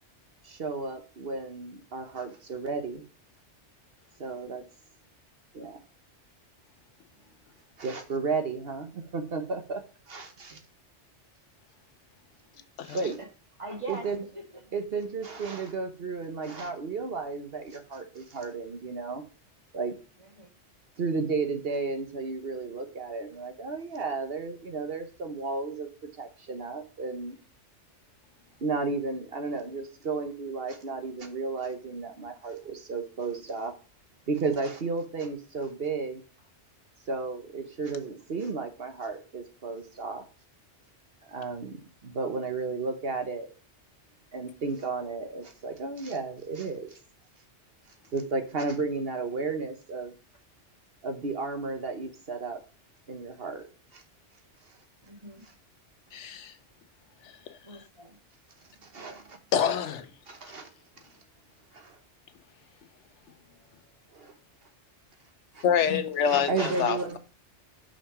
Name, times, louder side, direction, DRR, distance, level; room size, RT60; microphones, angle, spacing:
voice 1, 0.4-3.0 4.2-4.6 5.5-5.8 7.8-9.8 10.1-10.6 12.8-13.2 13.9-14.2 14.7-19.2 19.7-19.9 21.0-27.4 28.6-33.7 34.3-36.2 37.1-40.3 41.3-43.5 44.3-47.0 48.1-50.1 51.0-52.6 53.1-53.6 53.9-54.0 58.8-59.4 60.3-60.7 61.7-62.0 64.1-64.3 65.5-65.6 66.3-67.2, right 4 dB, 60° right, 1.2 m, -33 dB
voice 2, 13.6-14.1 14.3-14.8 20.2-20.5 55.0-55.5 57.6-58.2, right 2 dB, 25° right, 2.3 m, -42 dB
voice 3, 56.1-56.5 57.5-57.6 59.5-60.1 65.6-67.2, left 8 dB, 90° left, 1.1 m, -26 dB
5.8 x 5.8 x 4.8 m
omnidirectional pair, 1.2 m